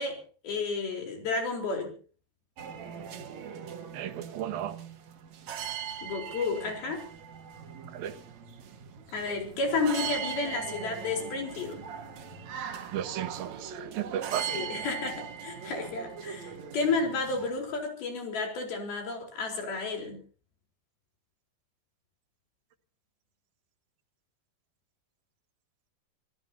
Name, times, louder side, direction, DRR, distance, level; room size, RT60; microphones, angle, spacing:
voice 1, 0.0-1.9 6.0-7.1 9.1-11.8 14.5-20.2, left 4 dB, 80° left, 2 dB, 6.1 m, -32 dB
sound 1, 2.6-17.5, right 8 dB, 55° right, 2.4 m, -40 dB
voice 2, 3.9-4.8 7.9-8.2 12.9-14.6, right 10 dB, 80° right, 9 dB, 3.0 m, -34 dB
26.5 x 17.0 x 2.8 m, 0.39 s
omnidirectional pair, 4.3 m